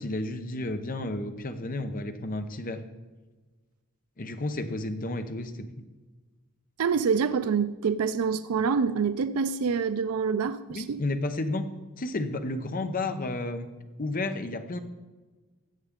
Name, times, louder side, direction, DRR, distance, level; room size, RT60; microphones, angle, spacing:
voice 1, 0.0-2.8 4.2-5.9 10.7-11.7 12.0-13.7 14.0-14.8, left 2 dB, 40° left, 8 dB, 0.8 m, -32 dB
voice 2, 6.8-11.0, right 6 dB, 85° right, 13 dB, 0.4 m, -26 dB
14.0 x 8.0 x 3.7 m, 1.3 s
head